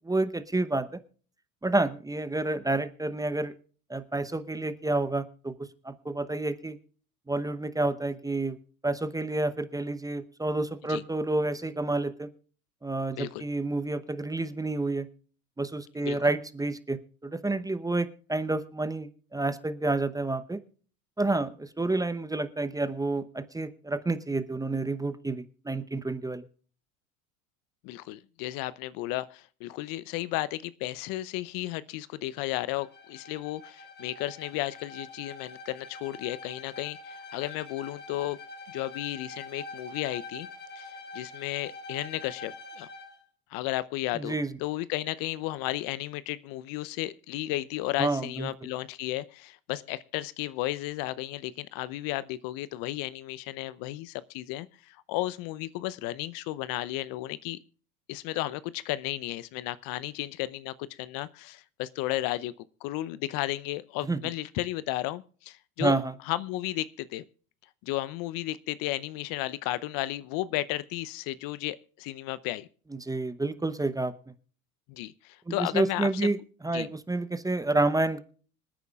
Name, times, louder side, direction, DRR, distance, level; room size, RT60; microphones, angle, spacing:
voice 1, 0.0-1.0 1.6-3.5 3.9-6.8 7.3-8.6 8.8-12.3 12.8-15.1 15.6-20.6 21.2-26.4 44.2-44.6 48.0-48.5 64.1-64.2 65.8-66.2 72.9-74.3 75.5-76.4 76.6-78.2, right 2 dB, 10° right, 12 dB, 0.8 m, -29 dB
voice 2, 27.8-38.4 38.7-40.5 40.8-42.9 43.5-57.6 58.1-62.5 62.8-65.9 66.3-67.2 67.8-72.7 74.9-76.3 76.7-76.9, left 16 dB, 55° left, 18 dB, 0.8 m, -34 dB
Bowed string instrument, 32.7-43.2, left 3 dB, 25° left, 3.0 m, -45 dB
26.0 x 9.3 x 2.4 m, 0.42 s
hypercardioid pair, 80°, 42 cm